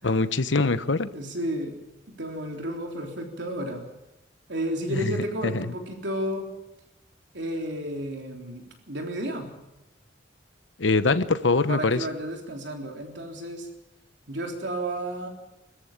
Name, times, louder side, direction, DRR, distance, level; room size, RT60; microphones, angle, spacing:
voice 1, 0.0-1.1 4.9-5.2 5.4-5.7 10.8-12.1, left 3 dB, 80° left, 13 dB, 1.0 m, -23 dB
voice 2, 0.8-1.8 2.1-3.9 4.5-6.5 7.3-9.5 11.7-13.7 14.3-15.3, right 1 dB, 70° right, 2 dB, 3.5 m, -32 dB
24.0 x 14.0 x 8.9 m, 0.94 s
head